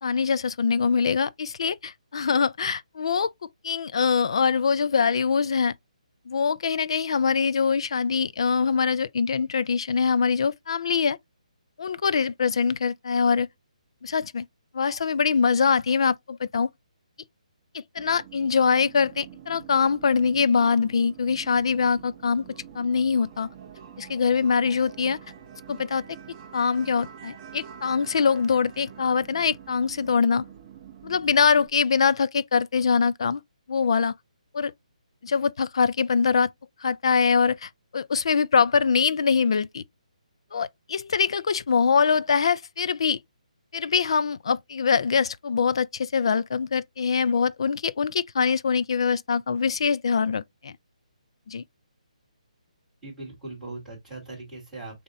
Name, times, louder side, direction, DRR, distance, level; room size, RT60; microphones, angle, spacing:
voice 1, 0.0-3.3 3.6-5.7 6.3-11.2 11.8-13.5 14.0-14.4 14.7-16.7 17.7-22.4 22.7-23.5 24.0-25.2 25.7-26.0 26.5-30.5 31.0-33.4 33.7-34.2 34.5-34.7 35.2-36.5 36.8-39.8 40.5-43.2 43.7-50.7 51.5-51.6, left 5 dB, 45° left, 0.3 m, -23 dB
sound 1, 18.0-31.7, right 9 dB, 20° right, 0.7 m, -46 dB
voice 2, 53.0-55.0, right 2 dB, 5° right, 2.7 m, -40 dB
6.6 x 2.8 x 2.5 m
hypercardioid pair, 175°, 4 cm